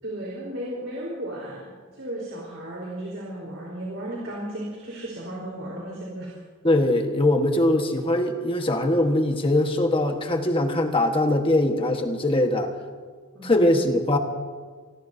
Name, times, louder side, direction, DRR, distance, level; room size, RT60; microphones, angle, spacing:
voice 1, 0.0-6.3 13.3-13.8, right 1 dB, 65° right, -5 dB, 4.2 m, -35 dB
voice 2, 6.6-12.7 13.4-14.2, left 1 dB, 25° left, 4 dB, 1.4 m, -22 dB
28.0 x 19.0 x 2.8 m, 1.5 s
head